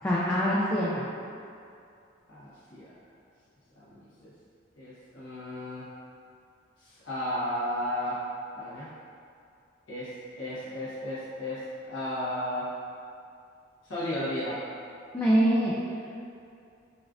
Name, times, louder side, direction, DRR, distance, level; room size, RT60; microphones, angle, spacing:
voice 1, 0.0-1.0 15.1-15.8, equal, 15° left, -8 dB, 0.3 m, -24 dB
voice 2, 2.3-2.8 3.8-4.3 4.8-5.9 6.8-8.2 8.5-8.9 9.9-12.8 13.8-14.6, left 1 dB, 90° left, -11 dB, 1.0 m, -34 dB
5.1 x 2.4 x 2.5 m, 2.4 s
head